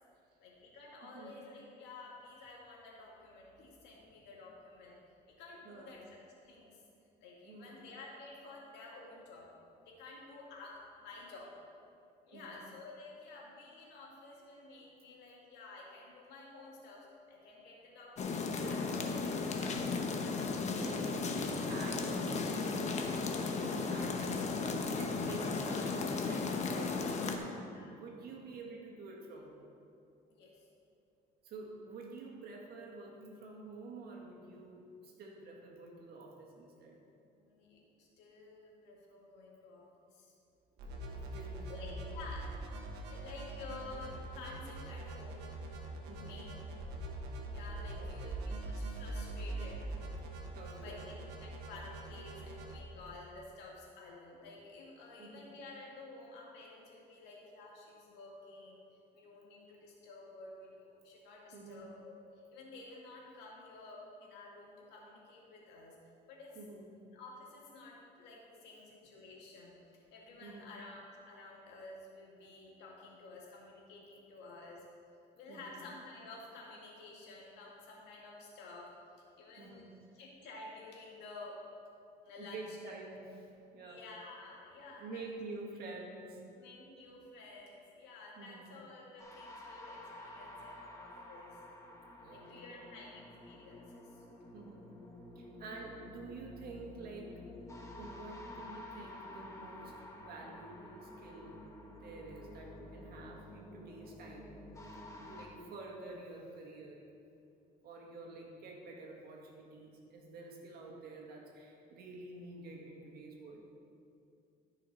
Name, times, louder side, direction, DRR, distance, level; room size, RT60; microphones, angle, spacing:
voice 1, 0.4-5.0 5.4-6.8 7.2-9.5 9.9-11.5 12.2-21.0 24.1-24.3 27.7-28.0 30.3-30.6 37.4-39.8 40.1-40.3 41.7-42.5 43.1-45.4 46.2-46.5 47.5-49.8 50.8-58.8 59.1-66.0 66.3-66.6 67.1-74.8 75.3-78.9 79.4-79.9 80.2-81.6 82.2-82.8 83.7-85.2 86.5-91.6 92.3-94.2, left 3 dB, 85° left, -3 dB, 2.2 m, -52 dB
voice 2, 1.0-1.3 5.6-6.1 7.4-7.8 12.3-12.6 20.4-20.6 20.9-29.7 31.4-37.0 40.8-42.4 43.3-43.4 46.1-46.5 47.9-48.4 50.5-51.1 55.2-55.6 61.5-61.9 66.5-67.0 70.4-70.8 75.5-75.8 79.6-79.9 82.3-84.1 84.9-86.4 88.4-88.7 92.2-92.8 94.5-94.8 95.4-97.3 98.0-101.6 101.9-104.5 105.2-107.0 107.8-113.6, right 3 dB, 65° right, -1 dB, 1.9 m, -49 dB
sound 1, 18.2-27.4, left 4 dB, 45° left, 0.9 m, -35 dB
sound 2, 40.8-52.8, right 2 dB, 90° right, 1.3 m, -43 dB
sound 3, 89.2-105.5, left 1 dB, 20° left, 1.3 m, -51 dB
13.5 x 5.9 x 4.2 m, 2.5 s
cardioid pair, 110°, 17 cm